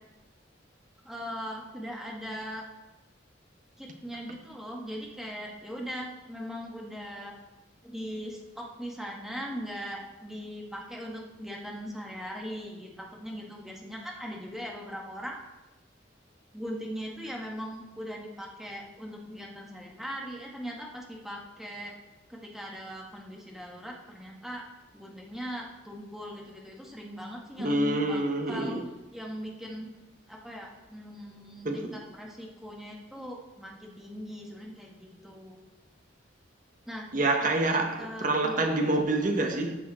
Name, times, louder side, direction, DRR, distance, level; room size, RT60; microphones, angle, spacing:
voice 1, 1.0-2.6 3.8-7.3 7.8-12.9 13.2-15.4 16.5-22.0 22.3-24.6 24.9-28.2 28.5-28.8 29.1-29.9 30.3-35.6 36.9-37.1 37.6-38.7, equal, ahead, 1.7 m, -40 dB
voice 2, 27.6-28.8 31.6-31.8 37.1-39.8, right 2 dB, 45° right, 1.4 m, -27 dB
13.5 x 7.4 x 4.3 m
head